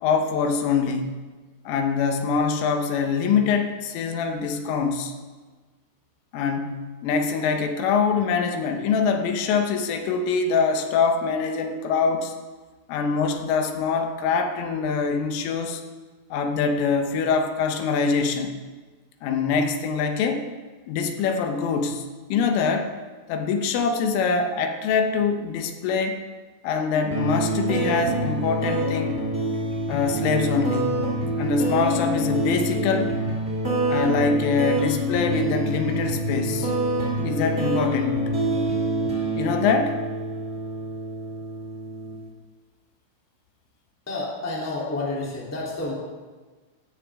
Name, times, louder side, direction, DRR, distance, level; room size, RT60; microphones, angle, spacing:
voice 1, 0.0-1.2 1.7-5.1 6.3-12.3 12.9-15.8 16.3-18.6 19.2-20.5 20.9-22.9 23.3-26.2 26.6-29.2 29.9-30.9 31.4-33.2 33.9-36.7 37.2-38.3 39.4-40.0, left 5 dB, 80° left, 5 dB, 3.7 m, -24 dB
sound 1, 27.1-42.2, right 1 dB, 30° right, 1.2 m, -26 dB
voice 2, 44.1-45.9, left 2 dB, 5° left, -5 dB, 1.9 m, -29 dB
17.5 x 13.5 x 3.7 m, 1.3 s
omnidirectional pair, 5.8 m